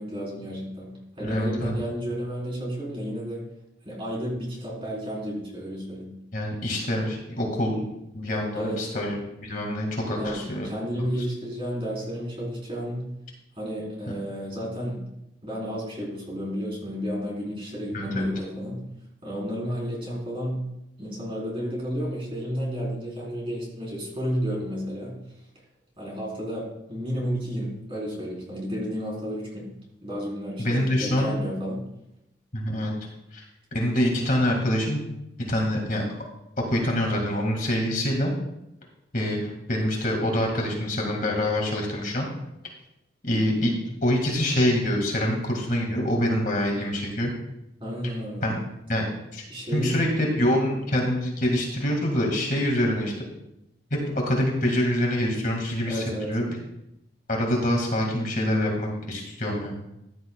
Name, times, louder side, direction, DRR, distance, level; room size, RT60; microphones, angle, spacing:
voice 1, 0.0-3.4 3.8-6.1 8.5-8.8 10.1-13.1 13.6-15.0 15.4-18.8 19.2-20.6 21.0-25.2 26.0-29.7 30.0-31.8 47.8-48.5 49.5-50.0 55.9-56.3, equal, 30° right, -4 dB, 4.1 m, -31 dB
voice 2, 1.2-1.7 6.3-7.9 8.1-10.7 17.9-18.3 30.6-31.3 32.5-32.9 33.3-33.4 33.7-35.0 35.4-36.0 36.6-38.3 39.1-42.3 43.2-43.7 44.0-47.3 48.4-48.6 48.9-49.4 49.7-53.1 53.9-56.6 57.3-59.7, left 1 dB, 45° left, 0 dB, 2.1 m, -25 dB
15.0 x 10.5 x 2.3 m, 0.86 s
head